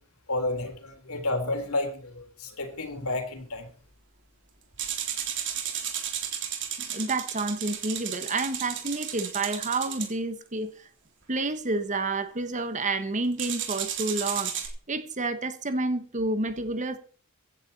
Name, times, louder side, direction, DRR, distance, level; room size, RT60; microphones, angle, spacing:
voice 1, 0.3-3.7, left 2 dB, 70° left, 3.6 m, -31 dB
sound 1, 4.8-10.1 13.4-14.7, right 9 dB, 55° right, 3.4 m, -33 dB
voice 2, 6.8-10.7 11.3-14.5 14.9-17.0, right 2 dB, 35° right, 1.3 m, -29 dB
16.5 x 10.5 x 4.2 m
head